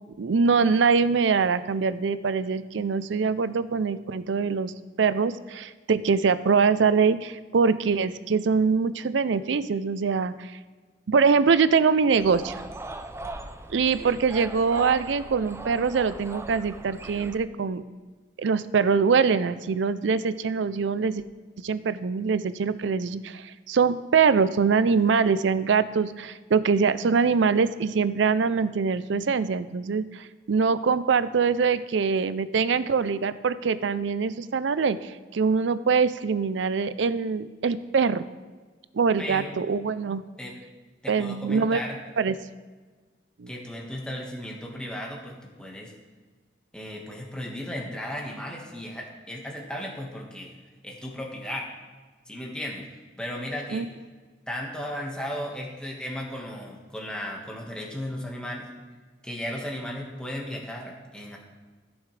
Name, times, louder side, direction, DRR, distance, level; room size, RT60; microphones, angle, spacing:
voice 1, 0.2-4.7 5.0-10.5 11.1-12.5 13.7-17.8 18.4-21.2 21.6-38.2 38.9-40.2 41.1-41.8 42.2-42.3 43.4-43.5 53.7-53.9, right 5 dB, 70° right, 14 dB, 0.4 m, -23 dB
sound 1, 12.2-17.4, right 2 dB, 15° right, 0.5 m, -39 dB
voice 2, 39.2-39.5 40.4-40.6 41.0-42.0 43.5-45.9 46.7-50.5 50.8-51.7 52.3-52.8 53.2-53.9 54.5-58.7 59.2-61.4, equal, 5° left, -2 dB, 1.5 m, -35 dB
14.5 x 7.2 x 3.3 m, 1.4 s
head